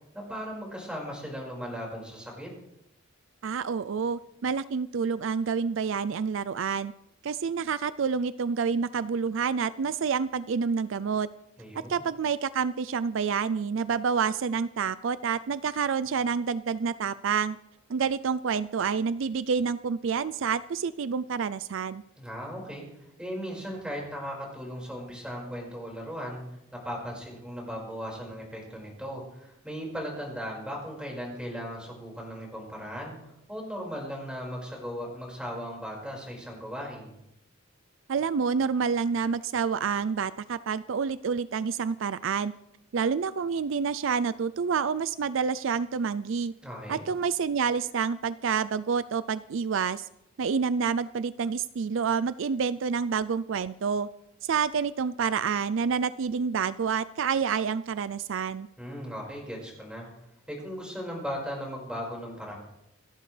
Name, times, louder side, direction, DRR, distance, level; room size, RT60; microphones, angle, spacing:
voice 1, 0.1-2.5 11.6-12.0 22.2-22.8 23.2-26.4 26.7-37.1 46.6-47.0 58.8-60.1 60.5-62.6, equal, 5° right, -2 dB, 5.1 m, -37 dB
voice 2, 3.4-6.9 7.2-11.3 11.9-17.6 17.9-22.0 38.1-42.5 42.9-46.5 46.9-50.1 50.4-54.1 54.4-58.7, right 6 dB, 65° right, 16 dB, 0.4 m, -28 dB
28.0 x 11.0 x 3.3 m, 0.82 s
head